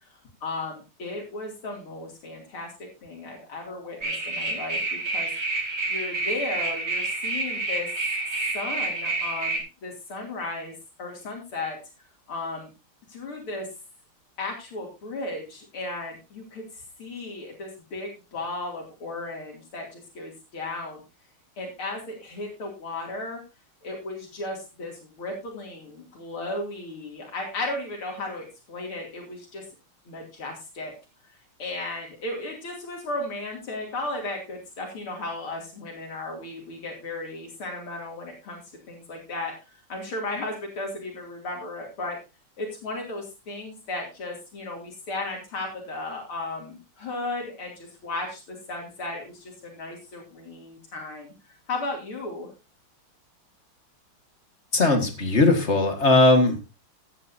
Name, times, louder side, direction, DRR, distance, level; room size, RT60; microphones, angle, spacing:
voice 1, 0.0-5.3 5.9-7.9 8.5-11.8 12.3-12.7 13.1-13.7 14.4-21.0 21.6-23.4 23.8-29.7 30.1-30.9 31.3-38.6 38.9-42.2 42.6-52.5, left 2 dB, 80° left, -1 dB, 3.6 m, -35 dB
sound 1, 4.0-9.6, right 2 dB, 65° right, 4.6 m, -28 dB
voice 2, 54.7-56.6, left 2 dB, 35° left, 6 dB, 1.9 m, -19 dB
15.5 x 9.7 x 2.7 m, 0.28 s
omnidirectional pair, 2.3 m